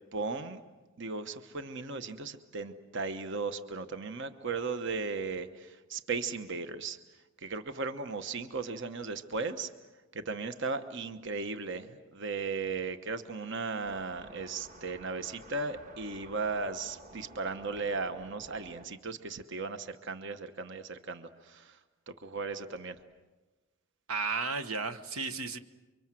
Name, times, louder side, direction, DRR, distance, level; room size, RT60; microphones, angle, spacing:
voice 1, 0.1-0.6 1.0-7.0 7.4-9.7 10.1-21.8 22.1-23.0, right 4 dB, 55° right, 9 dB, 1.1 m, -36 dB
sound 1, 13.8-18.9, right 2 dB, 35° right, 1.7 m, -52 dB
voice 2, 24.1-25.6, right 4 dB, 80° right, 9 dB, 1.2 m, -33 dB
29.0 x 25.0 x 7.6 m, 1.2 s
head